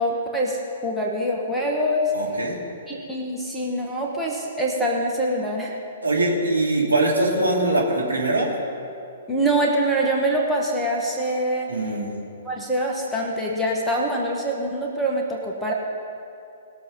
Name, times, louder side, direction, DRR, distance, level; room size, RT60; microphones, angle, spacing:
voice 1, 0.0-2.1 2.9-5.8 9.3-11.7 12.4-15.7, right 1 dB, ahead, -5 dB, 1.7 m, -24 dB
voice 2, 2.1-2.6 6.0-8.5 11.7-12.2, right 2 dB, 80° right, -3 dB, 3.0 m, -22 dB
20.0 x 7.0 x 5.7 m, 2.5 s
figure-of-eight pair, 120°, 0 cm